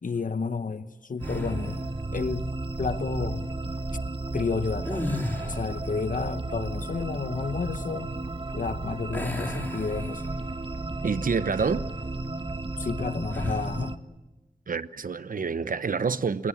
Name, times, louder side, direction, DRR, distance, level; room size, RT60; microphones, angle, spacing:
voice 1, 0.0-3.5 4.3-5.1 5.4-8.1 8.5-10.3 12.8-14.0, left 4 dB, 65° left, 1.1 m, -31 dB
sound 1, 1.2-1.8 4.8-5.9 9.1-10.6 11.0-11.2 13.3-13.8, left 1 dB, 15° left, 4.9 m, -34 dB
sound 2, 1.2-14.0, right 2 dB, 35° right, 1.5 m, -33 dB
voice 2, 11.0-11.8 14.7-16.5, right 5 dB, 70° right, 1.0 m, -27 dB
28.5 x 18.0 x 8.6 m
wide cardioid pair, 60°, 15 cm